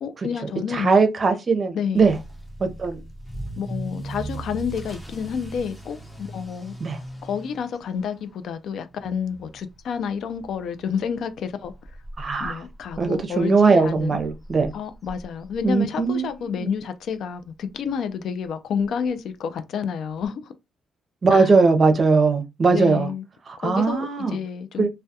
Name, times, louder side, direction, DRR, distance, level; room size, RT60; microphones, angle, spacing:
voice 1, 0.0-0.9 1.7-2.1 3.6-6.7 7.2-11.7 12.4-14.2 14.7-20.5 21.3-21.5 22.7-23.2 23.6-24.9, left 7 dB, 70° left, 0.3 m, -29 dB
voice 2, 0.7-2.2 2.6-3.0 6.8-7.0 12.2-12.6 13.0-14.7 15.6-16.7 21.2-23.1 23.5-24.4 24.8-24.9, right 4 dB, 40° right, 0.6 m, -20 dB
Motor vehicle (road) / Accelerating revving vroom, 2.0-16.8 17.1-17.5 18.0-18.1 18.4-18.5 18.8-18.9 20.2-20.3, right 1 dB, 15° left, 0.8 m, -40 dB
2.2 x 2.1 x 2.7 m
cardioid pair, 90°, 0 cm